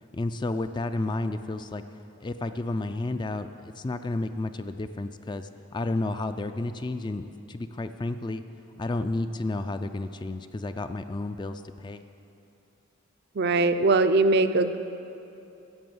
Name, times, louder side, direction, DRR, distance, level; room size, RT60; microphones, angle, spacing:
voice 1, 0.1-1.8 2.2-8.4 8.8-12.0, left 2 dB, 20° left, 9 dB, 0.3 m, -31 dB
voice 2, 13.3-14.8, right 3 dB, 50° right, 10 dB, 0.5 m, -21 dB
14.5 x 7.1 x 7.8 m, 2.8 s
head